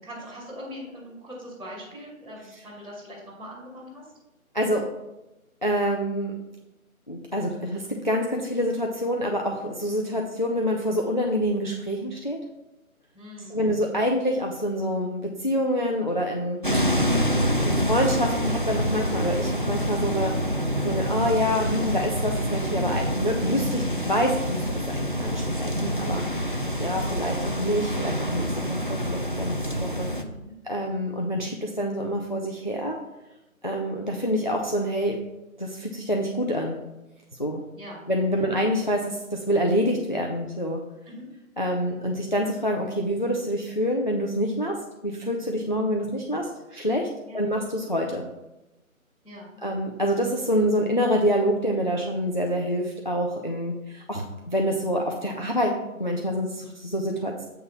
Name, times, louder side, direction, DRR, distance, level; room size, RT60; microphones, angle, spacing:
voice 1, 0.0-4.1 13.1-13.7 30.1-30.5 37.7-38.0 38.3-38.5 41.1-41.3 47.3-47.5 49.2-49.6, equal, 10° right, -12 dB, 2.9 m, -41 dB
voice 2, 5.6-6.3 7.1-12.4 13.5-16.8 17.7-20.3 20.8-26.2 26.8-30.1 30.6-33.0 33.6-35.2 35.6-36.8 37.4-37.6 38.1-40.8 41.6-44.7 45.0-47.1 47.3-48.2 49.6-57.4, equal, 35° left, 1 dB, 0.5 m, -26 dB
sound 1, 16.6-30.2, equal, 40° right, 0.4 m, -26 dB
8.1 x 3.7 x 5.7 m, 0.95 s
figure-of-eight pair, 155°, 43 cm